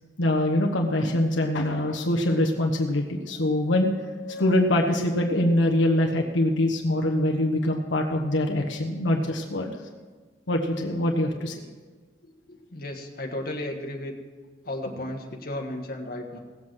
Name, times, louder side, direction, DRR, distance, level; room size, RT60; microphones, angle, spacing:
voice 1, 0.2-9.7 10.5-11.6, left 1 dB, 80° left, 1 dB, 1.2 m, -24 dB
voice 2, 12.2-14.1 14.6-16.4, left 1 dB, 50° left, 2 dB, 1.5 m, -34 dB
18.0 x 7.7 x 6.2 m, 1.4 s
head